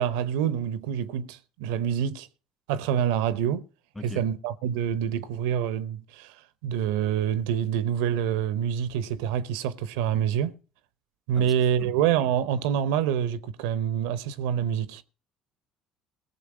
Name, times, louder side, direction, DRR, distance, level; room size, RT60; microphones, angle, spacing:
voice 1, 0.0-2.3 2.7-3.6 4.0-10.5 11.3-15.0, right 9 dB, 75° right, 0.7 m, -26 dB
voice 2, 3.9-4.3 11.3-11.9, left 2 dB, 10° left, 1.1 m, -41 dB
19.0 x 7.0 x 4.9 m
hypercardioid pair, 65°, 0 cm